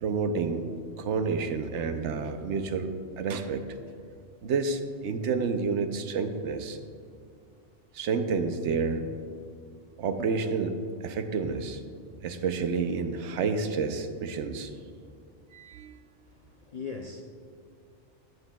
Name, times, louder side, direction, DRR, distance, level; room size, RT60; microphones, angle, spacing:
voice 1, 0.0-0.7 1.0-2.9 3.2-3.6 4.4-6.8 7.9-9.1 10.0-11.8 12.2-14.7 15.5-16.0, right 5 dB, 75° right, 8 dB, 0.9 m, -29 dB
voice 2, 16.3-17.2, left 5 dB, 55° left, 2 dB, 0.4 m, -40 dB
13.5 x 7.9 x 2.3 m, 2.4 s
omnidirectional pair, 1.2 m